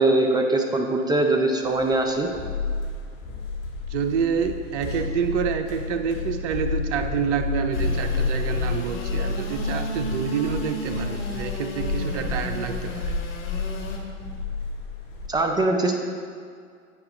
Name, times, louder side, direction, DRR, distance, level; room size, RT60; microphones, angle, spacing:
voice 1, 0.0-2.3 15.3-16.0, right 2 dB, 10° right, 2 dB, 0.5 m, -22 dB
sound 1, 1.8-15.3, left 4 dB, 35° left, 1.9 m, -30 dB
voice 2, 3.9-13.1, right 7 dB, 65° right, 7 dB, 0.7 m, -27 dB
Engine / Sawing, 7.7-14.0, left 2 dB, 65° left, 1.5 m, -35 dB
8.7 x 5.8 x 3.9 m, 2.1 s
hypercardioid pair, 110°, 39 cm